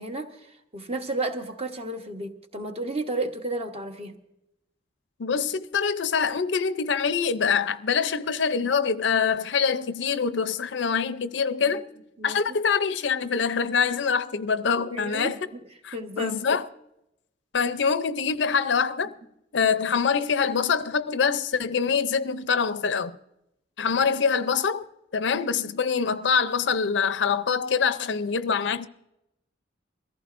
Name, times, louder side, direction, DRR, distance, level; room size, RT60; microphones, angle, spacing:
voice 1, 0.0-4.1 11.6-11.8 12.2-12.6 14.9-15.3 15.9-16.4, right 2 dB, 35° right, 1.0 m, -32 dB
voice 2, 5.2-11.9 12.2-15.4 15.8-16.7 17.5-19.1 19.5-23.2 23.8-24.8 25.1-28.9, left 6 dB, 70° left, 0.5 m, -25 dB
23.0 x 15.0 x 2.5 m
head